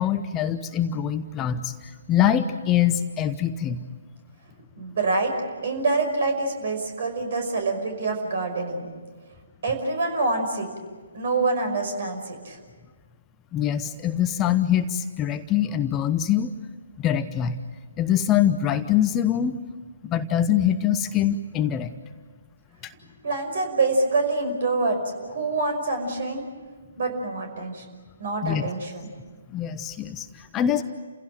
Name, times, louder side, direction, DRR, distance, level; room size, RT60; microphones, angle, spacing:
voice 1, 0.0-3.8 13.5-16.5 17.0-17.6 18.0-19.6 20.0-21.9 22.8-22.9 28.4-28.7 29.5-30.8, left 10 dB, 20° left, 9 dB, 0.9 m, -24 dB
voice 2, 4.8-5.3 5.6-8.9 9.6-10.7 11.1-12.6 23.2-26.4 27.0-27.8 28.2-29.1, right 3 dB, 50° right, 5 dB, 5.6 m, -26 dB
30.0 x 16.5 x 9.1 m, 1.4 s
figure-of-eight pair, 135°, 0 cm